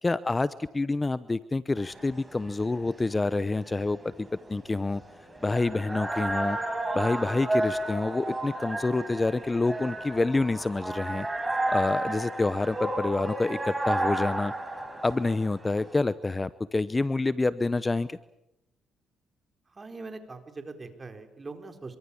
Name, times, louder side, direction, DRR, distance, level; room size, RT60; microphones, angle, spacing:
voice 1, 0.0-5.0 5.4-6.6 6.9-11.3 11.7-14.5 15.0-18.2, left 3 dB, 20° left, 15 dB, 0.8 m, -27 dB
sound 1, 1.8-16.0, right 1 dB, 15° right, 6.9 m, -32 dB
voice 2, 19.7-22.0, right 3 dB, 30° right, 6 dB, 4.4 m, -42 dB
26.5 x 24.5 x 7.2 m, 0.87 s
cardioid pair, 90°, 0 cm